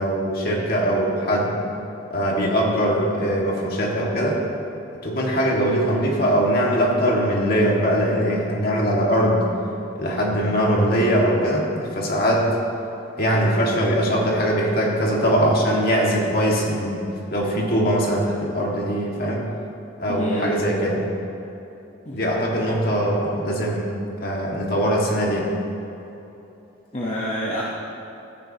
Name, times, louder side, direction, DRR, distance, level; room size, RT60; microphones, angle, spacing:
voice 1, 0.0-1.6 2.1-4.4 5.0-9.5 10.0-12.5 13.2-19.4 20.0-21.1 22.1-23.9 24.2-25.5, equal, 50° left, -2 dB, 1.8 m, -21 dB
voice 2, 20.1-20.6 22.1-22.2 22.6-22.7 26.9-27.6, equal, 35° left, -5 dB, 1.0 m, -27 dB
14.0 x 10.0 x 2.9 m, 3.0 s
head